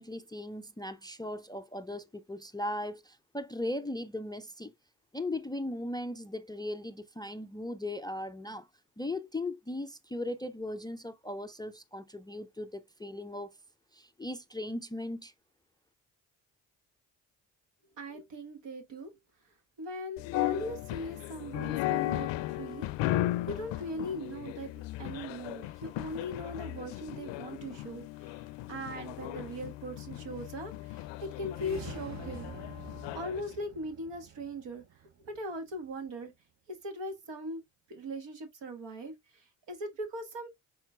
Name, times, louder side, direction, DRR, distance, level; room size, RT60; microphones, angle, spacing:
voice 1, 0.0-4.7 5.1-8.7 9.0-13.5 13.9-15.3, left 1 dB, 10° left, 0.4 m, -38 dB
voice 2, 18.0-19.1 19.8-24.7 25.0-32.5 33.1-34.8 35.3-36.3 36.7-37.6 37.9-40.6, equal, 65° right, 1.4 m, -40 dB
sound 1, 20.2-33.5, left 16 dB, 65° left, 0.5 m, -36 dB
sound 2, 31.4-35.8, right 9 dB, 35° right, 0.6 m, -48 dB
5.7 x 3.9 x 2.2 m
hypercardioid pair, 45°, 47 cm